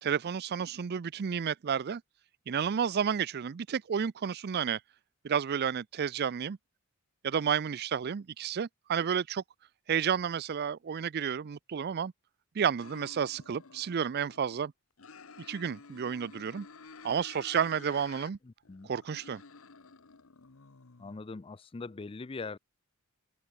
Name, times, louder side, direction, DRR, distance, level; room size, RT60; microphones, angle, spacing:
voice 1, 0.0-2.0 2.5-4.8 5.2-6.6 7.2-9.4 9.9-12.1 12.5-14.7 15.5-16.7 17.0-18.4 18.8-19.4, right 7 dB, 45° right, 0.4 m, -31 dB
sound 1, 12.8-14.6 15.0-18.3 18.6-21.2, left 5 dB, 70° left, 1.0 m, -52 dB
voice 2, 18.4-18.9 21.0-22.6, left 3 dB, 25° left, 0.4 m, -41 dB
open air
head